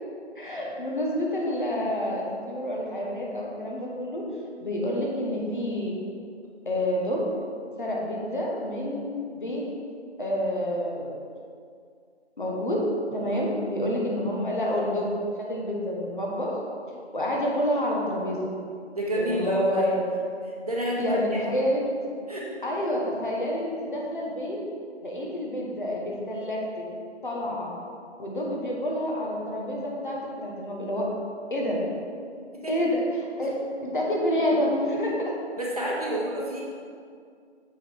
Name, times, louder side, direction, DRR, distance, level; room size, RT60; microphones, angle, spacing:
voice 1, 0.3-4.2 4.6-5.9 6.6-7.2 7.8-9.6 10.2-11.1 12.4-12.8 13.1-15.1 15.4-16.6 17.1-18.5 19.2-20.0 21.0-21.9 22.6-24.6 25.0-26.6 27.2-27.7 28.2-31.0 31.5-31.8 32.7-33.5 33.8-35.1, left 1 dB, 45° left, -3 dB, 1.5 m, -28 dB
voice 2, 18.9-19.9 20.6-21.4 22.3-22.5 32.5-32.7 35.6-36.6, equal, 35° right, -4 dB, 1.1 m, -28 dB
7.3 x 5.5 x 4.7 m, 2.3 s
figure-of-eight pair, 160°, 34 cm